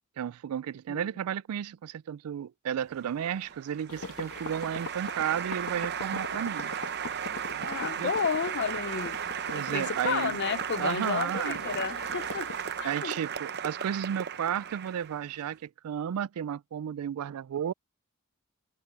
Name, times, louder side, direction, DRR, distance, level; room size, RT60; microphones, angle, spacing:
voice 1, 0.2-6.7 7.5-7.7 8.0-8.1 9.5-10.4 10.8-11.6 12.8-17.7, right 9 dB, 90° right, 0.3 m, -33 dB
Applause, 2.9-15.4, right 8 dB, 50° right, 0.7 m, -36 dB
sound 1, 3.9-12.9, left 3 dB, 85° left, 1.9 m, -44 dB
voice 2, 7.6-9.2 9.5-12.5 12.8-13.2, left 6 dB, 50° left, 0.5 m, -32 dB
head